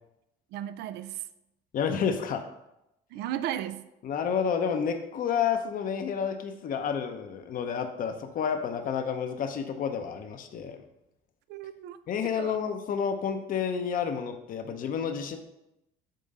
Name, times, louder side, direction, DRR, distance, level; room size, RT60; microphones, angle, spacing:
voice 1, 0.5-1.2 3.1-3.9 11.5-12.0 12.4-12.6, right 11 dB, 85° right, 13 dB, 0.5 m, -35 dB
voice 2, 1.7-2.4 4.0-10.8 12.1-15.4, left 7 dB, 55° left, 7 dB, 0.8 m, -30 dB
7.7 x 3.8 x 5.4 m, 0.88 s
cardioid pair, 110°, 17 cm